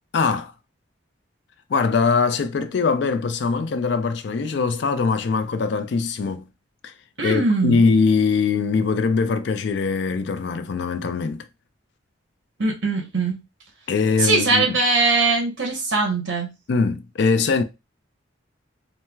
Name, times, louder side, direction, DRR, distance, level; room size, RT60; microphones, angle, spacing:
voice 1, 0.1-0.5 1.7-6.5 6.8-11.5 13.9-14.8 16.7-17.6, left 4 dB, 60° left, 0.4 m, -22 dB
voice 2, 7.2-7.8 12.6-13.4 14.2-16.5, right 3 dB, 65° right, 1.0 m, -21 dB
4.3 x 2.0 x 2.3 m
head